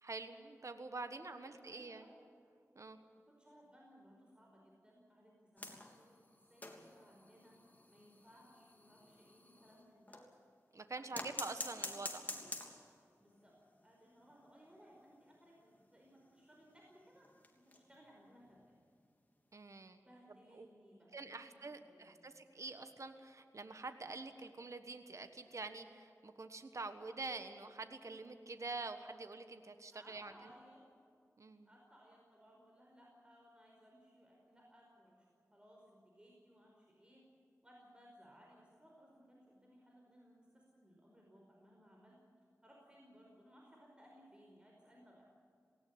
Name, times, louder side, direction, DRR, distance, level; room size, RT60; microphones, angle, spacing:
voice 1, 0.0-2.0 2.7-3.0 10.7-12.2 19.5-20.0 20.5-20.7 21.1-30.5 31.4-31.7, right 3 dB, 60° right, 8 dB, 1.4 m, -46 dB
voice 2, 1.4-2.1 3.3-6.2 6.5-7.6 7.9-10.2 10.9-12.5 13.2-13.5 13.8-17.3 17.6-18.7 20.0-22.2 29.9-30.8 31.6-37.2 37.6-42.2 42.6-45.2, equal, 15° right, -2 dB, 5.0 m, -63 dB
sound 1, 5.6-10.4 11.1-13.0 13.4-13.5 13.8-13.9 14.2-14.3 14.9-18.0 18.4-18.7 19.9-20.0, left 2 dB, 30° left, 3.2 m, -49 dB
19.0 x 18.0 x 9.7 m, 2.5 s
wide cardioid pair, 60°, 6 cm